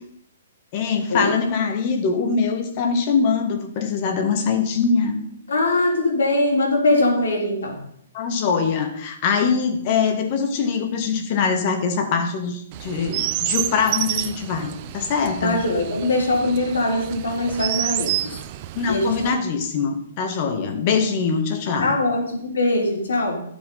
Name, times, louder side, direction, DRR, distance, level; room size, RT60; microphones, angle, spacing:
voice 1, 0.7-5.2 8.1-15.6 18.8-22.0, left 5 dB, 30° left, 5 dB, 1.8 m, -23 dB
voice 2, 5.5-7.8 15.4-18.2 18.9-19.3 21.8-23.4, left 2 dB, 90° left, 0 dB, 3.9 m, -21 dB
Chirp tweet, 12.7-19.3, right 14 dB, 30° right, 0.6 m, -29 dB
12.5 x 7.0 x 5.5 m, 0.69 s
hypercardioid pair, 165°, 0 cm